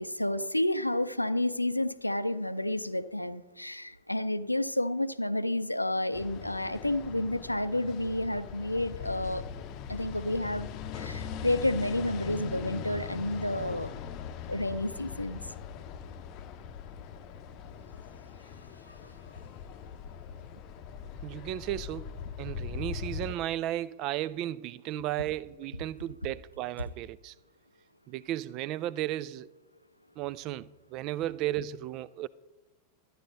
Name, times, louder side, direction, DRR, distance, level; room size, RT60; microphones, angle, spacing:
voice 1, 0.0-9.5 9.9-10.7 10.9-13.9 14.5-15.4 18.9-19.1, left 1 dB, 85° left, 0.5 m, -30 dB
sound 1, 6.1-23.4, left 7 dB, 40° left, 0.7 m, -41 dB
voice 2, 21.2-22.1 22.4-27.3 28.1-29.5 30.2-32.3, right 13 dB, 40° right, 0.3 m, -34 dB
12.5 x 9.5 x 3.9 m
figure-of-eight pair, 90°, 0 cm